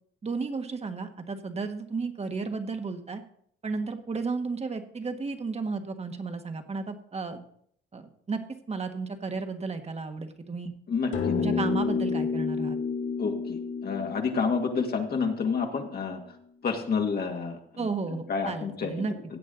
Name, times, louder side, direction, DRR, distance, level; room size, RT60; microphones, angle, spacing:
voice 1, 0.2-3.2 3.6-7.4 7.9-8.4 8.7-10.7 11.4-12.8 17.8-19.1, right 4 dB, 30° right, 6 dB, 1.5 m, -33 dB
voice 2, 10.9-11.5 13.2-16.2 16.6-19.1, left 5 dB, 50° left, 2 dB, 2.1 m, -29 dB
sound 1, 11.1-15.8, left 5 dB, 75° left, 2.2 m, -30 dB
16.0 x 8.4 x 3.9 m, 0.64 s
cardioid pair, 90°, 20 cm